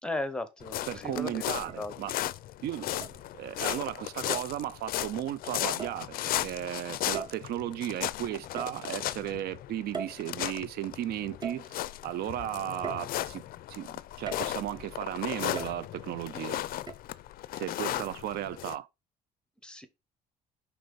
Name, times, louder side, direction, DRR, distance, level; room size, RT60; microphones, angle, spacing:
voice 1, 0.0-1.4 1.8-1.9 17.8-18.1 19.6-19.9, left 2 dB, 5° left, 0.9 m, -36 dB
sound 1, 0.6-18.8, left 14 dB, 60° left, 0.4 m, -36 dB
sound 2, 0.6-0.7 1.7-2.3 3.0-3.6 4.3-4.6 5.8-6.1 7.1-7.7 8.6-9.2 9.9-10.8 11.4-12.1 12.8-13.6 14.3-14.8 15.6-16.2 16.9-17.0, right 5 dB, 25° right, 0.9 m, -41 dB
voice 2, 0.9-2.1 2.6-3.1 3.3-13.4 13.7-16.6 17.5-18.9, right 12 dB, 70° right, 0.4 m, -35 dB
5.4 x 3.3 x 5.2 m
cardioid pair, 110°, 17 cm